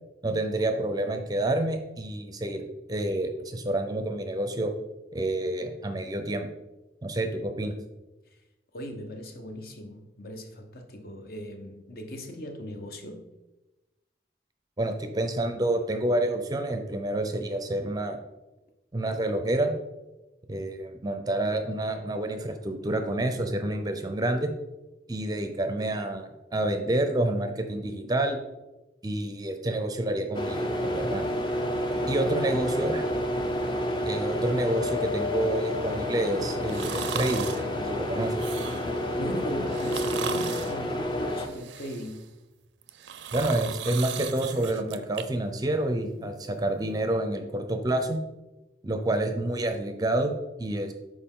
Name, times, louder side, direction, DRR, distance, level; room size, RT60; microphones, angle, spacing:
voice 1, 0.2-4.7 5.1-6.5 7.0-7.7 14.8-18.2 18.9-19.7 20.5-24.5 25.1-28.4 29.0-31.3 32.1-33.1 34.1-37.5 37.8-38.4 43.3-48.2 48.8-50.9, right 1 dB, 20° right, 7 dB, 0.5 m, -28 dB
voice 2, 8.7-13.3 31.9-32.6 38.8-42.3 46.2-46.3, equal, 55° left, 4 dB, 0.8 m, -39 dB
sound 1, 30.3-41.5, left 1 dB, 25° left, 0.6 m, -29 dB
sound 2, 36.7-37.6 38.2-39.0 39.7-40.8 41.3-42.3 42.8-45.2 45.6-45.7, right 8 dB, 80° right, 0.4 m, -37 dB
6.7 x 4.8 x 3.7 m, 1.1 s
head